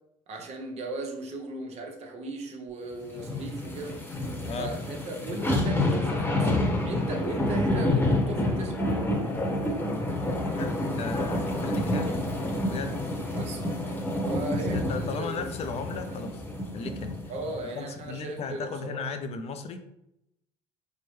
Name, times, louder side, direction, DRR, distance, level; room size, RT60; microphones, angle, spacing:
voice 1, 0.3-4.0 4.6-9.0 13.3-13.6 14.3-15.5 17.3-19.0, right 2 dB, 50° right, 3 dB, 0.8 m, -37 dB
sound 1, 3.1-17.6 18.0-18.1, left 1 dB, 15° left, 1.0 m, -28 dB
voice 2, 4.4-4.7 10.6-12.1 12.6-13.0 14.7-16.4 16.7-17.2 17.7-19.8, left 5 dB, 50° left, 7 dB, 0.5 m, -36 dB
4.6 x 2.1 x 3.1 m, 0.82 s
supercardioid pair, 80°, 14 cm